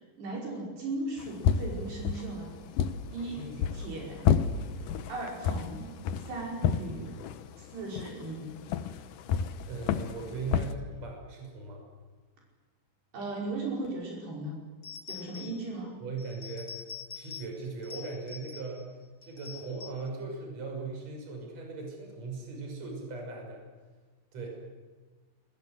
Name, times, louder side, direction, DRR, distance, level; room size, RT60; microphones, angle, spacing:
voice 1, 0.2-2.5 3.1-3.4 3.7-4.2 4.8-5.9 6.3-7.2 7.6-8.5 13.1-14.6 15.1-16.0, right 2 dB, 60° right, -2 dB, 7.4 m, -37 dB
sound 1, 1.2-10.7, left 7 dB, 90° left, 1.8 m, -31 dB
voice 2, 9.7-11.8 16.0-16.8 17.1-18.9 19.2-23.6 24.3-24.5, right 3 dB, 35° right, 1 dB, 7.1 m, -39 dB
sound 2, 14.8-15.7 16.2-17.6 17.8-18.8 19.2-20.1, left 7 dB, 35° left, 3.6 m, -45 dB
28.5 x 21.5 x 8.0 m, 1.4 s
omnidirectional pair, 5.5 m